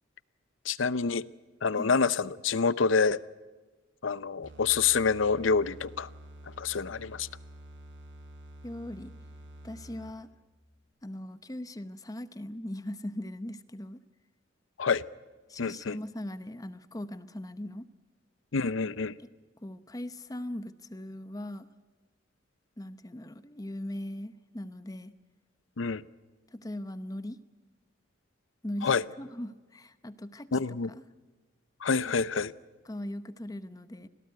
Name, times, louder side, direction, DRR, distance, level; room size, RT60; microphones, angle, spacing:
voice 1, 0.6-1.3 1.6-3.2 4.0-6.1 6.5-7.3 14.8-15.0 15.6-16.0 18.5-19.2 25.8-26.0 28.8-29.0 30.5-30.9 31.8-32.5, left 5 dB, 80° left, 17 dB, 0.7 m, -27 dB
sound 1, 4.4-10.3, right 1 dB, 65° right, 4.6 m, -49 dB
voice 2, 8.6-9.1 9.6-10.3 11.0-14.0 15.5-17.9 19.6-21.7 22.8-25.1 26.5-27.4 28.6-30.5 30.9-31.0 32.9-34.1, left 1 dB, 20° left, 12 dB, 0.8 m, -39 dB
26.5 x 18.0 x 9.4 m, 1.3 s
head